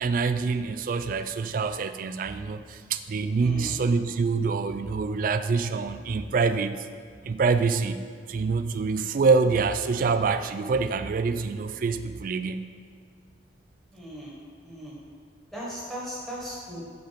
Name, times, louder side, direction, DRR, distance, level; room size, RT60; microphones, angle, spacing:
voice 1, 0.0-6.8 7.2-8.0 8.3-12.7, right 4 dB, 50° right, 10 dB, 0.3 m, -26 dB
voice 2, 3.4-3.8 13.9-14.3 14.6-15.0 15.5-16.8, equal, ahead, -7 dB, 1.7 m, -37 dB
8.0 x 4.0 x 5.1 m, 2.2 s
head